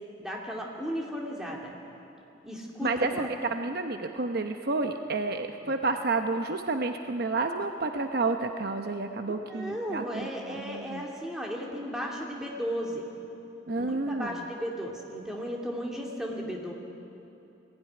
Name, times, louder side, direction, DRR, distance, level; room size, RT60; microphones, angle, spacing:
voice 1, 0.2-1.7 2.4-3.3 5.6-5.7 9.2-13.0 13.8-16.7, equal, 5° right, -2 dB, 2.6 m, -35 dB
voice 2, 2.8-11.0 13.7-14.5 16.4-16.5, right 3 dB, 50° right, 6 dB, 0.8 m, -30 dB
20.5 x 16.0 x 10.0 m, 2.9 s
head